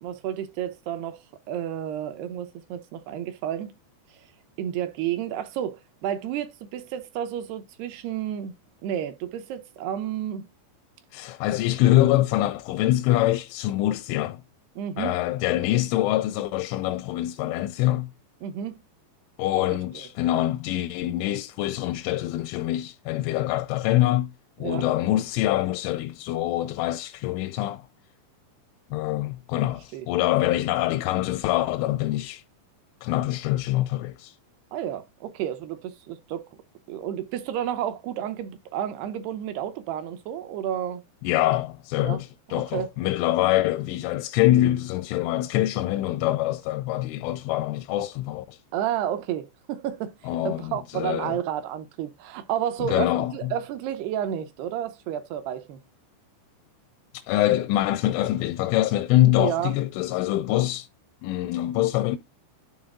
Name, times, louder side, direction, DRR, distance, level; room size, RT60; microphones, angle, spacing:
voice 1, 0.0-1.2 1.5-3.7 4.6-8.5 8.8-10.5 14.8-15.2 18.4-18.8 24.6-24.9 29.9-30.1 34.7-36.5 36.9-41.0 42.0-42.2 42.5-42.9 48.7-50.2 50.4-55.8 59.4-59.7, right 10 dB, 80° right, 2.5 m, -31 dB
voice 2, 11.1-14.4 15.0-18.1 19.4-24.3 24.6-27.8 28.9-32.4 33.0-34.3 41.2-48.6 50.2-51.4 52.8-53.5 57.3-60.9 61.2-62.2, left 15 dB, 85° left, 3.0 m, -24 dB
12.0 x 3.9 x 3.6 m
omnidirectional pair, 5.5 m